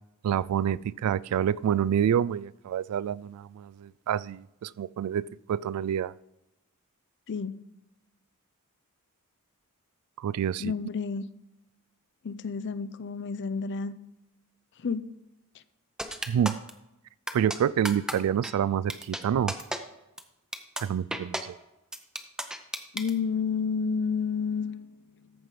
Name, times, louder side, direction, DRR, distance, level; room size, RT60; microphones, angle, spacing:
voice 1, 0.2-5.2 5.5-6.1 10.2-10.7 16.3-16.6 17.3-19.5 20.8-21.5, right 9 dB, 85° right, 0.3 m, -27 dB
voice 2, 7.3-7.6 10.6-11.3 12.2-13.9 14.8-15.0 22.9-25.1, left 5 dB, 55° left, 0.5 m, -30 dB
sound 1, 16.0-16.7 17.3-17.6 17.8-18.1 18.4-18.5 18.9-19.2 19.5-19.8 20.2-20.3 20.5-20.8 21.1-21.4 21.9-23.1, right 1 dB, 5° right, 0.6 m, -32 dB
14.0 x 4.8 x 5.3 m
head